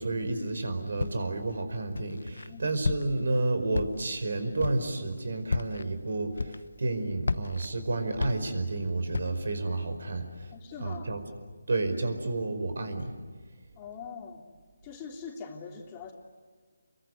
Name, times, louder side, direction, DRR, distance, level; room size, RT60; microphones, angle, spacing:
voice 1, 0.0-10.5 10.8-11.2 11.7-13.1, right 2 dB, 65° right, 9 dB, 5.0 m, -31 dB
Walk footsteps, 1.0-1.4 1.9-2.5 2.8-3.3 3.7-4.2 4.6-4.9 5.4-5.9 6.3-6.9 7.2-8.8 9.1-9.5, left 3 dB, 75° left, 1.0 m, -32 dB
voice 2, 10.5-11.2 13.7-14.4 14.8-16.1, left 5 dB, 20° left, 1 dB, 3.2 m, -42 dB
29.5 x 23.0 x 8.2 m, 1.5 s
figure-of-eight pair, 160°, 0 cm